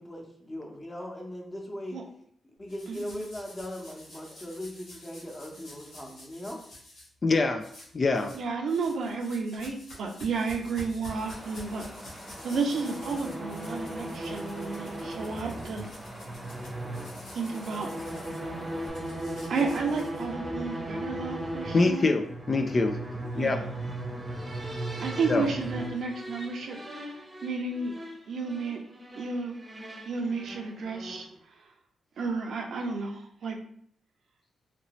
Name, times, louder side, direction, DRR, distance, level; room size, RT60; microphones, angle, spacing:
voice 1, 0.0-2.0 2.6-6.6 23.0-23.3, left 1 dB, 25° left, 0 dB, 1.0 m, -39 dB
sound 1, 2.7-7.1 7.6-8.4 8.7-20.6, left 1 dB, 85° left, 1.2 m, -49 dB
voice 2, 2.9-3.2 8.3-16.2 17.3-17.9 19.5-22.2 23.4-23.7 25.0-26.8 27.4-28.0 28.3-28.8 29.1-29.6 30.1-31.3 32.2-33.6, right 4 dB, 70° right, 3 dB, 0.5 m, -32 dB
voice 3, 7.2-7.7 7.9-8.3 21.7-23.0 23.4-23.6 25.3-25.5, left 3 dB, 45° left, 5 dB, 0.3 m, -24 dB
Wind, 11.1-18.9, equal, ahead, 1.1 m, -45 dB
sound 2, 12.3-31.3, right 1 dB, 20° right, 0.8 m, -38 dB
2.9 x 2.6 x 3.0 m, 0.63 s
supercardioid pair, 55°, 0 cm